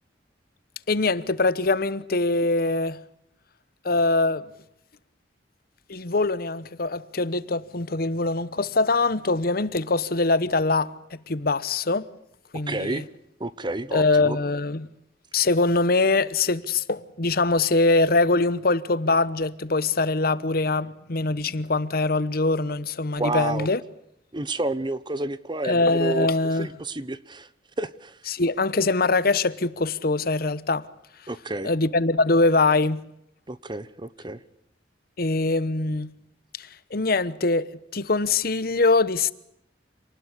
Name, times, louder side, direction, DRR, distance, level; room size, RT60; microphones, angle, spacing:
voice 1, 0.9-3.0 3.8-4.4 5.9-10.9 11.3-12.1 12.5-13.0 13.9-14.9 15.3-23.8 25.6-26.7 28.3-30.8 31.6-33.0 35.2-36.1 36.6-37.7 37.9-39.3, left 3 dB, 55° left, 1.1 m, -23 dB
voice 2, 12.7-13.0 13.4-14.4 23.2-23.7 24.3-27.5 27.8-28.2 31.3-31.7 33.5-34.4, right 2 dB, 25° right, 1.1 m, -30 dB
27.5 x 19.5 x 8.3 m
head